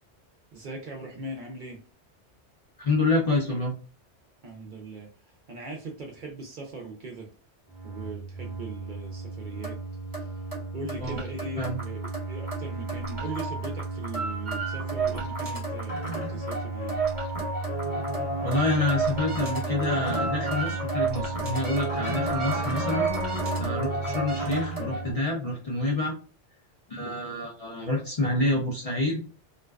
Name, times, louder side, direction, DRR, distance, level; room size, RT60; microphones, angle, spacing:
voice 1, 0.5-1.8 4.4-5.1 5.5-7.3 7.8-9.8 10.2-10.3 10.7-17.0, right 2 dB, 60° right, 0 dB, 0.5 m, -40 dB
voice 2, 2.8-3.7 11.0-11.2 11.6-11.8 18.4-23.1 23.6-26.1 26.9-29.2, left 2 dB, 45° left, -3 dB, 0.5 m, -27 dB
sound 1, 7.7-25.1, right 3 dB, 30° right, 1.0 m, -31 dB
2.4 x 2.2 x 2.2 m, 0.38 s
omnidirectional pair, 1.2 m